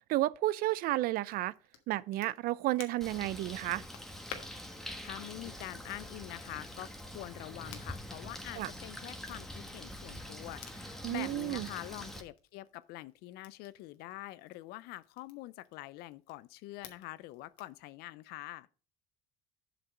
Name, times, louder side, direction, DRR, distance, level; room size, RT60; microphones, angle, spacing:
voice 1, 0.1-1.5 1.9-3.8 8.6-8.7 11.0-11.7, right 16 dB, 60° right, 0.4 m, -32 dB
Crackle, 1.2-17.8, left 9 dB, 90° left, 1.3 m, -56 dB
Bird, 3.0-12.2, left 1 dB, ahead, 1.4 m, -45 dB
voice 2, 5.0-18.7, left 17 dB, 70° left, 0.4 m, -45 dB
7.9 x 6.0 x 4.9 m
supercardioid pair, 85°, 17 cm